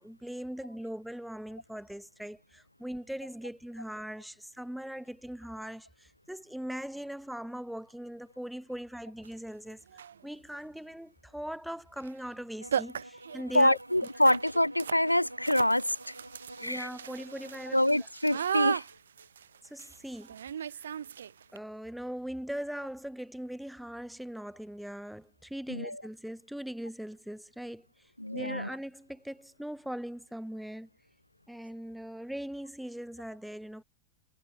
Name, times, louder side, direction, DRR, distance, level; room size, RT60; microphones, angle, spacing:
voice 1, 0.0-13.8 14.3-14.4 16.6-17.8 19.6-20.4 20.7-21.0 21.5-30.9 31.5-33.8, equal, ahead, 2.8 m, -40 dB
sound 1, 9.2-9.3 9.9-10.2 12.0-12.1 12.4-12.5 12.7-21.6, right 8 dB, 65° right, 0.5 m, -37 dB
sound 2, 12.6-18.1, right 1 dB, 85° right, 4.0 m, -49 dB
voice 2, 13.5-16.2 16.6-16.9 17.7-18.8 25.7-26.0 28.2-28.7, left 1 dB, 90° left, 0.4 m, -26 dB
figure-of-eight pair, 90°, 0 cm